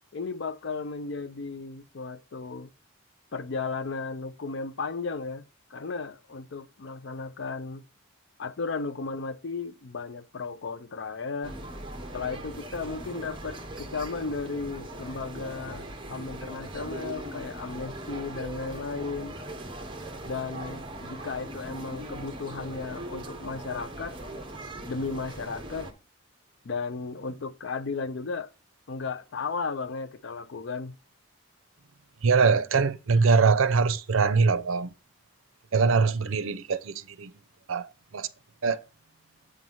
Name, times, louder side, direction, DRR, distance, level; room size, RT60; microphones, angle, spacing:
voice 1, 0.1-2.7 3.3-5.5 5.7-7.9 8.4-11.6 12.1-19.4 20.2-24.2 24.9-25.9 26.6-28.5 28.9-31.0, left 4 dB, 60° left, 0.5 m, -35 dB
sound 1, 11.4-25.9, right 1 dB, 25° right, 1.0 m, -40 dB
voice 2, 32.2-34.9 35.7-37.3 37.7-38.3 38.6-38.8, right 4 dB, 80° right, 0.5 m, -23 dB
8.2 x 3.1 x 5.5 m
head